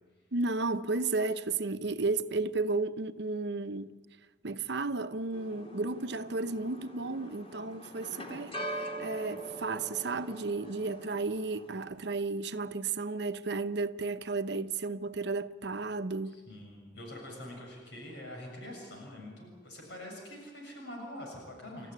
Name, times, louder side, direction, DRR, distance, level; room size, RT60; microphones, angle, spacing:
voice 1, 0.3-3.9 4.4-8.6 9.0-16.4, right 3 dB, 70° right, 1.0 m, -33 dB
sound 1, 5.3-11.9, right 1 dB, 30° left, 3.2 m, -43 dB
voice 2, 16.2-21.9, left 1 dB, 70° left, 7.0 m, -45 dB
30.0 x 14.0 x 9.7 m
head